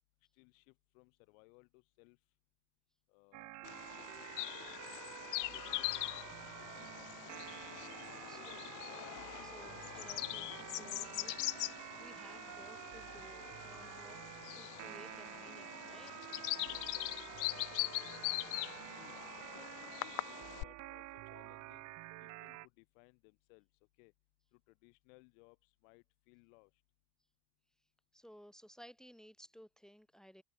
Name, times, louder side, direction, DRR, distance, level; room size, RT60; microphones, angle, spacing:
voice 1, 0.3-2.2 3.1-3.5 3.9-4.4 5.5-7.7 8.1-8.5 16.6-16.9 18.9-21.9 22.2-23.7 24.0-24.1 24.5-26.7, left 33 dB, 75° left, 4.3 m, -64 dB
sound 1, 3.3-22.7, right 19 dB, 45° right, 1.3 m, -49 dB
Bird vocalization bird call bird song, 3.6-20.6, left 22 dB, 50° left, 1.2 m, -42 dB
voice 2, 8.3-8.6 9.4-11.6 12.0-14.2 14.5-16.3 28.1-30.4, equal, ahead, 2.2 m, -58 dB
cardioid pair, 160°, 40 cm